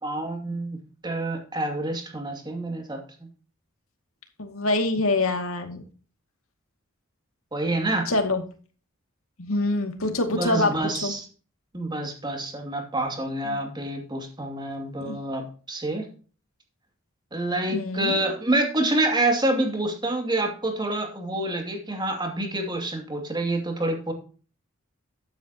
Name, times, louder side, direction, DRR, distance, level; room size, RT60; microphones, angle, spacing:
voice 1, 0.0-0.8 1.0-3.0 7.5-8.1 10.1-11.3 11.7-16.1 17.3-24.1, right 2 dB, 20° right, 3 dB, 2.6 m, -27 dB
voice 2, 4.4-5.8 8.1-8.4 9.4-10.7 11.0-11.1 13.4-13.6 15.0-15.2 17.7-18.2, left 2 dB, 90° left, 5 dB, 2.3 m, -25 dB
13.0 x 9.3 x 2.9 m, 0.38 s
head